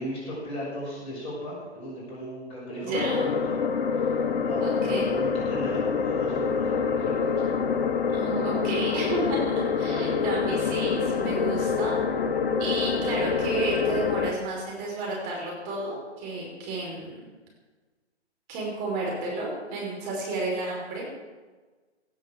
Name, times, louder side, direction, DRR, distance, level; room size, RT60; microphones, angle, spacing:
voice 1, 0.0-3.6 3.9-7.5, equal, 15° left, -6 dB, 6.2 m, -37 dB
voice 2, 2.7-3.2 4.6-5.1 8.1-11.9 12.6-17.1 18.5-21.1, right 2 dB, 25° right, -3 dB, 5.5 m, -31 dB
sound 1, 2.9-14.3, left 5 dB, 50° left, 1.5 m, -26 dB
18.5 x 8.4 x 7.6 m, 1.3 s
figure-of-eight pair, 135°, 35 cm